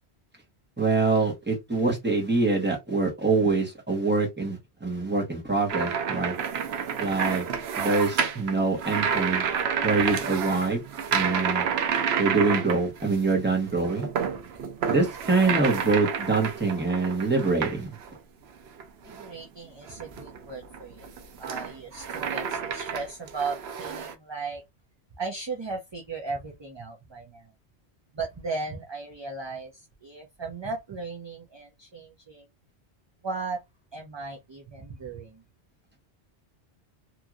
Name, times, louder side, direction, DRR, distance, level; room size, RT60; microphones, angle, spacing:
voice 1, 0.8-6.3 7.0-7.4 7.8-9.4 9.8-10.8 11.1-11.6 12.2-14.1 14.9-17.9, right 3 dB, 10° right, 1.0 m, -25 dB
sound 1, 5.7-13.3 13.7-18.2 18.7-19.3 19.9-24.1, right 7 dB, 75° right, 0.9 m, -30 dB
voice 2, 19.0-21.1 21.4-24.6 25.2-27.5 28.1-32.5 33.2-33.6 33.9-35.4, right 4 dB, 30° right, 0.5 m, -36 dB
2.9 x 2.7 x 2.4 m
omnidirectional pair, 1.1 m